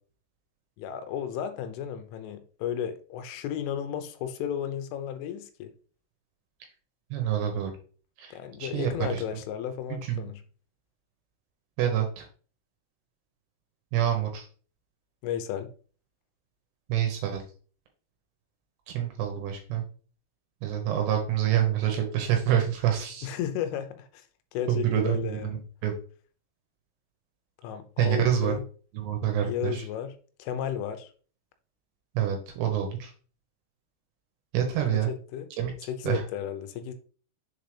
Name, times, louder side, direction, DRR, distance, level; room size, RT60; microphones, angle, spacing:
voice 1, 0.8-5.7 8.3-10.4 15.2-15.7 23.2-24.2 24.5-25.5 27.6-28.6 29.4-30.1 30.4-31.1 34.9-35.5 35.9-36.9, left 9 dB, 85° left, 3.2 m, -33 dB
voice 2, 7.1-7.7 8.2-8.3 8.6-9.2 10.1-10.3 11.8-12.3 13.9-14.5 16.9-17.4 18.9-19.8 20.6-23.3 24.7-25.9 28.0-28.5 28.9-29.9 32.1-33.1 34.5-35.1 35.6-35.7 36.0-36.2, right 10 dB, 75° right, 2.6 m, -27 dB
7.3 x 4.0 x 3.3 m
omnidirectional pair, 5.7 m